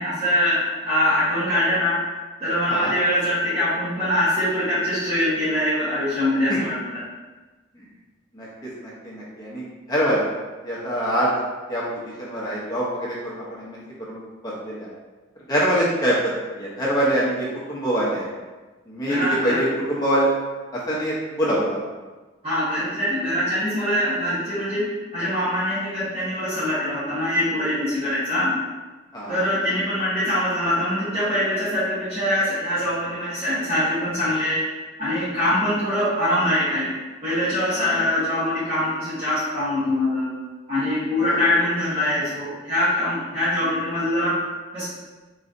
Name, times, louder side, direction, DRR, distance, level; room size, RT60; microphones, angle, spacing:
voice 1, 0.0-2.0 2.4-7.0 19.0-19.6 22.4-28.6 29.3-34.6 35.0-36.9 37.2-40.3 40.7-44.4 44.7-44.8, left 1 dB, 30° right, -14 dB, 1.3 m, -23 dB
voice 2, 8.8-10.2 10.6-11.4 11.7-11.8 12.2-13.8 14.1-14.9 15.5-18.3 18.9-20.3 20.9-21.8 29.1-29.4 37.8-37.9 41.3-41.4, right 1 dB, 20° left, -7 dB, 0.7 m, -24 dB
3.9 x 3.1 x 2.6 m, 1.2 s
head